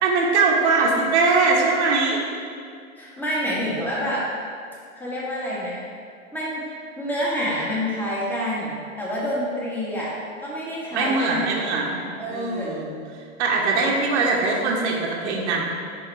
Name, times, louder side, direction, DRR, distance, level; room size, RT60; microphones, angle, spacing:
voice 1, 0.0-2.2 10.9-12.0 12.3-12.9 13.4-15.7, right 3 dB, 55° right, -2 dB, 1.2 m, -21 dB
voice 2, 3.0-4.3 5.0-5.8 6.3-10.1 10.4-11.6 12.0-12.8, equal, 5° left, -7 dB, 1.6 m, -28 dB
10.0 x 4.2 x 3.3 m, 2.3 s
hypercardioid pair, 110°, 41 cm